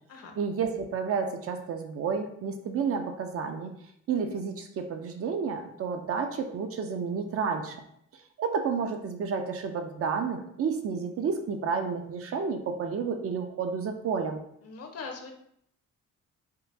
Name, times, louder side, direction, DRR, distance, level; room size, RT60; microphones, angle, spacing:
voice 1, 0.4-3.8 4.1-7.8 8.4-14.4, right 5 dB, 50° right, 5 dB, 0.5 m, -31 dB
voice 2, 14.6-15.3, left 4 dB, 55° left, 3 dB, 0.8 m, -41 dB
3.6 x 2.4 x 2.8 m, 0.72 s
cardioid pair, 90°, 30 cm